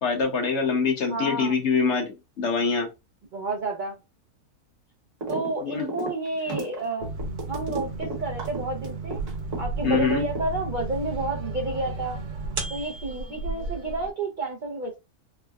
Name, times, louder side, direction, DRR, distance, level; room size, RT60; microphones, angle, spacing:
voice 1, 0.0-2.9 5.6-5.9 9.8-10.2, left 5 dB, 50° left, 1.1 m, -24 dB
voice 2, 1.1-1.5 3.3-3.9 5.3-7.1 7.5-9.2 9.6-12.2 12.7-15.0, right 2 dB, 70° right, 0.4 m, -30 dB
sound 1, 5.2-5.5 5.8-9.6 9.9-10.8, right 2 dB, 55° right, 1.4 m, -32 dB
sound 2, 7.0-14.1, right 3 dB, 90° right, 1.3 m, -33 dB
3.6 x 2.1 x 2.3 m
omnidirectional pair, 1.6 m